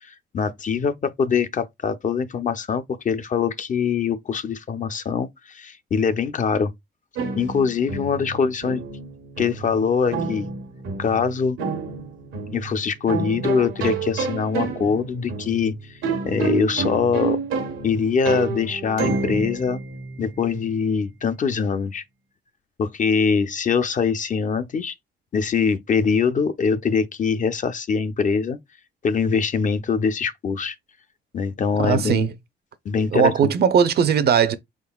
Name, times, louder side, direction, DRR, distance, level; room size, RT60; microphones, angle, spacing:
voice 1, 0.0-6.7 7.4-8.8 9.4-10.5 11.0-11.6 12.5-16.0 16.2-17.4 17.8-19.8 20.2-22.0 22.8-25.0 25.3-28.6 29.0-30.8 31.3-32.3 32.8-33.5, left 6 dB, 40° left, 0.5 m, -23 dB
sound 1, 7.2-20.7, right 4 dB, 85° right, 1.1 m, -29 dB
voice 2, 31.8-32.3 33.1-34.6, right 7 dB, 55° right, 0.6 m, -19 dB
4.1 x 3.7 x 2.3 m
cardioid pair, 90°, 20 cm